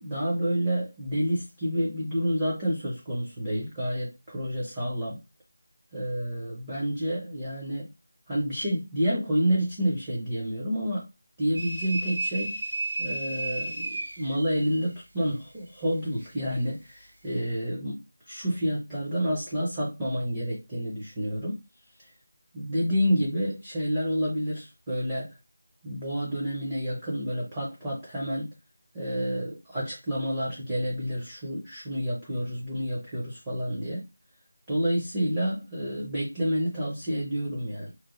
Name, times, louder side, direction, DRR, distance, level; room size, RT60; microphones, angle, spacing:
voice 1, 0.0-5.2 5.9-7.9 8.3-11.1 11.4-12.6 13.0-18.0 18.3-21.6 22.5-25.4 25.8-28.5 28.9-34.0 34.7-37.9, equal, 10° right, -6 dB, 0.4 m, -29 dB
sound 1, 11.5-14.9, right 2 dB, 60° right, 1.5 m, -33 dB
2.8 x 2.1 x 3.6 m, 0.24 s
figure-of-eight pair, 180°, 0 cm